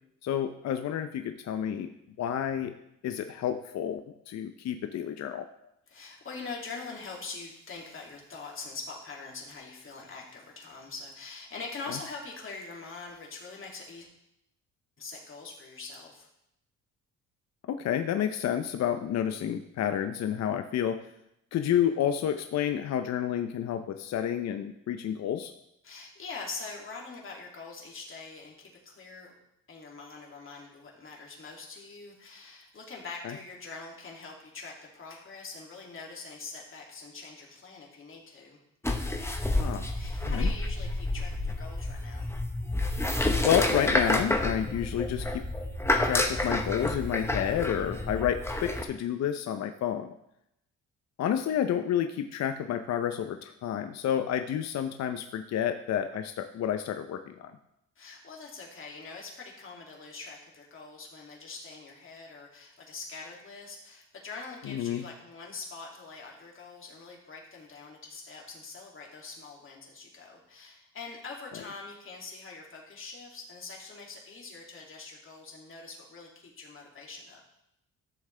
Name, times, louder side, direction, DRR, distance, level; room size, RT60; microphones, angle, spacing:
voice 1, 0.2-1.9 2.2-2.7 3.0-5.5 17.7-21.0 21.5-25.5 33.2-33.3 39.6-39.9 40.3-40.5 43.4-45.4 46.0-50.1 51.2-57.5 64.6-65.0, left 9 dB, 60° left, 8 dB, 0.6 m, -30 dB
voice 2, 5.9-14.1 15.0-16.3 25.8-29.3 29.7-38.6 39.9-42.3 58.0-77.4, left 4 dB, 45° left, -2 dB, 2.6 m, -44 dB
sound 1, 38.8-48.8, left 2 dB, 10° left, 1.1 m, -29 dB
12.5 x 7.3 x 3.3 m, 0.82 s
cardioid pair, 90°, 30 cm